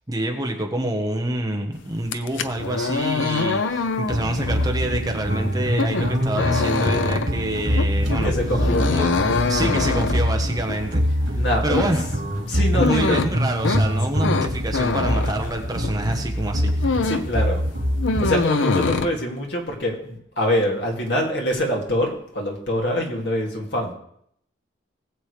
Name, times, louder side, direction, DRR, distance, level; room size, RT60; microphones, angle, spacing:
voice 1, 0.1-8.3 8.9-9.1 9.4-11.0 11.3-12.0 12.7-17.1, right 1 dB, 20° right, 3 dB, 1.2 m, -27 dB
sound 1, 2.0-16.1 16.4-17.4 17.6-19.1, left 4 dB, 85° left, 0.7 m, -25 dB
sound 2, 4.1-18.3, equal, 80° right, 3.2 m, -24 dB
voice 2, 8.2-8.9 11.3-11.9 12.5-13.2 17.0-17.7 18.2-23.9, equal, 65° left, -1 dB, 2.5 m, -24 dB
19.5 x 7.7 x 3.3 m, 0.71 s
head